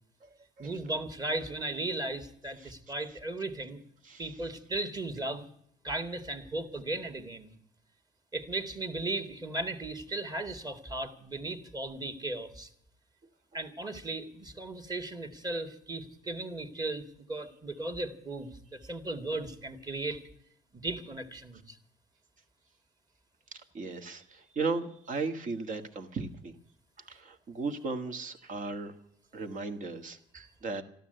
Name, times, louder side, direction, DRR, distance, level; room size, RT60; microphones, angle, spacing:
voice 1, 0.6-3.8 4.2-5.5 5.8-7.5 8.3-12.7 13.5-20.2 20.7-21.8, right 2 dB, 25° right, 7 dB, 2.0 m, -36 dB
voice 2, 23.7-26.5 27.0-28.9 29.3-30.8, right 4 dB, 50° right, 7 dB, 1.8 m, -36 dB
13.5 x 12.5 x 7.9 m, 0.68 s
cardioid pair, 110°, 17 cm